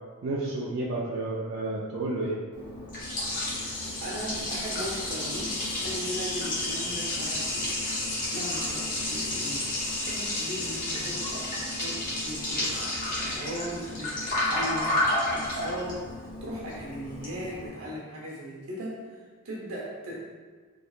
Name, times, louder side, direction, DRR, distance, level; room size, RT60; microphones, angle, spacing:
voice 1, 0.2-2.4, right 2 dB, 60° right, -5 dB, 0.4 m, -31 dB
Liquid, 2.5-17.7, left 1 dB, 40° left, 0.8 m, -31 dB
voice 2, 3.5-8.0 8.3-20.3, equal, 85° right, -4 dB, 0.9 m, -38 dB
3.2 x 2.8 x 2.4 m, 1.5 s
head